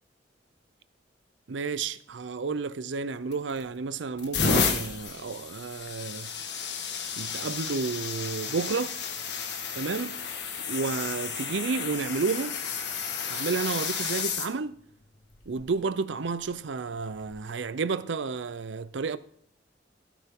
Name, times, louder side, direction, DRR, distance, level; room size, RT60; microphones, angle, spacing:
voice 1, 1.5-6.3 7.2-9.0 9.7-10.2 10.7-12.6 13.3-14.8 15.5-19.2, right 4 dB, 90° right, 0.6 m, -31 dB
sound 1, 3.3-3.7 4.2-14.5 15.3-15.6 17.1-17.3, left 5 dB, 70° left, 1.5 m, -32 dB
16.0 x 8.4 x 3.7 m
head